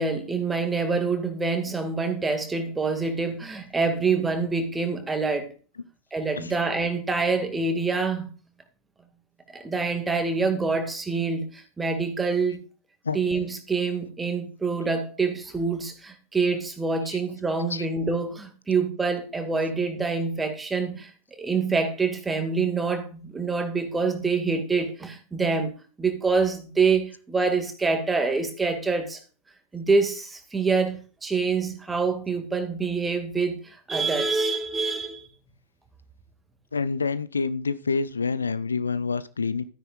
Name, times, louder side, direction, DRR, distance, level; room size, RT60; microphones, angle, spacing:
voice 1, 0.0-5.5 6.1-8.3 9.5-12.6 13.1-21.1 21.4-25.7 26.0-29.2 29.7-35.3, right 4 dB, 10° right, 2.1 m, -26 dB
voice 2, 36.7-39.7, left 4 dB, 75° left, 0.5 m, -27 dB
13.0 x 9.9 x 2.5 m
figure-of-eight pair, 90°, 0 cm